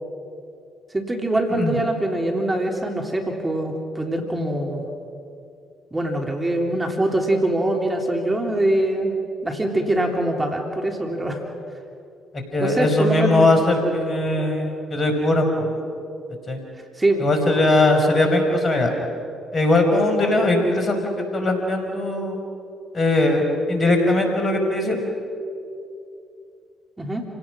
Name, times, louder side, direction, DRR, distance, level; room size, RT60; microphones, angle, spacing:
voice 1, 0.9-4.8 5.9-9.1 9.4-11.4 12.6-13.5 17.0-17.3 27.0-27.3, right 1 dB, 20° right, 3 dB, 3.4 m, -23 dB
voice 2, 12.5-15.7 16.5-16.6 17.2-18.9 19.5-22.4 22.9-25.0, left 2 dB, 40° left, 4 dB, 5.3 m, -20 dB
29.5 x 17.5 x 6.4 m, 2.6 s
hypercardioid pair, 50°, 0 cm